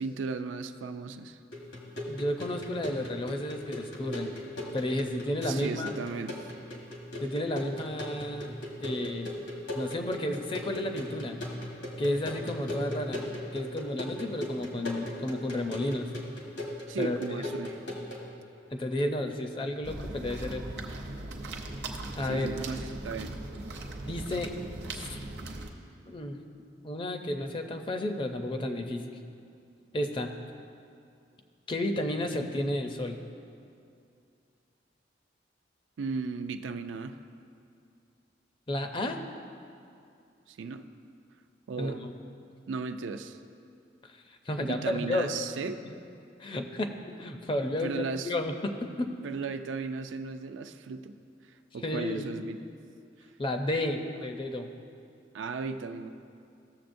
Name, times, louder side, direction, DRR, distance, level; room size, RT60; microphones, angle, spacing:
voice 1, 0.0-1.4 5.4-6.4 16.9-17.8 22.2-23.4 36.0-37.2 40.5-40.9 41.7-42.0 42.7-43.4 44.6-45.8 47.8-48.3 49.2-51.1 51.7-52.6 55.3-56.1, right 4 dB, 85° right, 8 dB, 0.4 m, -35 dB
sound 1, 1.5-18.3, left 1 dB, 75° left, 1.4 m, -39 dB
voice 2, 2.1-4.3 4.7-5.9 7.2-9.4 9.7-11.4 12.0-13.2 13.5-16.1 17.0-17.4 18.7-20.7 22.1-22.5 24.0-24.5 24.9-25.2 26.1-26.4 26.8-29.2 29.9-30.3 31.7-33.2 38.7-39.2 41.8-42.1 44.0-45.3 45.8-46.0 46.4-46.9 47.2-49.1 51.8-52.2 53.4-54.7, left 1 dB, 25° left, 5 dB, 0.5 m, -32 dB
sound 2, 19.8-25.7, right 2 dB, 65° right, 0.8 m, -39 dB
15.0 x 6.9 x 2.6 m, 2.4 s
head